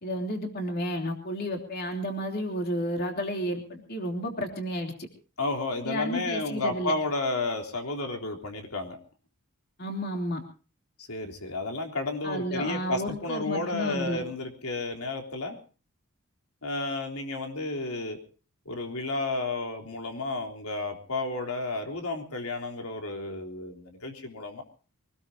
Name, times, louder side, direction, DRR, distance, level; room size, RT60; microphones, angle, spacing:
voice 1, 0.0-5.1 5.8-6.9 9.8-10.4 12.2-14.2, equal, 45° left, 3 dB, 3.2 m, -32 dB
voice 2, 5.4-9.0 11.1-15.6 16.6-18.2 18.7-24.6, left 2 dB, 85° left, 3 dB, 3.6 m, -32 dB
24.5 x 19.5 x 2.9 m, 0.36 s
head